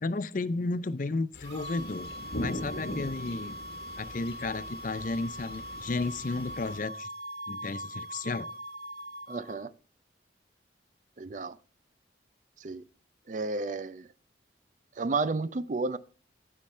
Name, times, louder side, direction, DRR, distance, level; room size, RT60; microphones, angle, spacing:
voice 1, 0.0-2.1 2.4-3.6 4.0-7.1 7.5-8.5, left 3 dB, 45° left, 0.5 m, -33 dB
sound 1, 1.3-6.8, left 1 dB, 65° left, 1.2 m, -41 dB
sound 2, 1.4-9.6, equal, 60° right, 2.4 m, -41 dB
voice 2, 9.3-9.7 11.2-11.6 12.6-12.8 13.3-14.1 15.0-16.0, right 3 dB, 40° right, 0.4 m, -32 dB
15.5 x 5.8 x 3.2 m
head